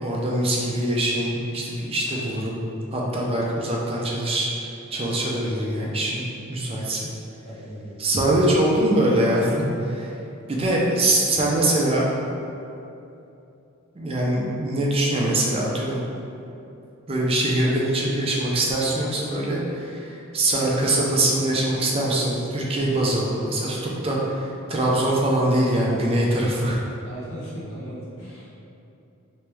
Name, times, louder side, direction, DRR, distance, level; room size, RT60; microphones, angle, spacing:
voice 1, 0.0-2.6 2.9-4.5 4.9-6.2 6.5-7.1 8.0-10.1 10.5-12.1 13.9-16.0 17.1-26.8, right 1 dB, 25° right, -3 dB, 0.4 m, -23 dB
voice 2, 7.4-8.0 27.0-28.5, right 1 dB, 75° left, -8 dB, 1.1 m, -37 dB
3.1 x 3.0 x 3.3 m, 2.8 s
head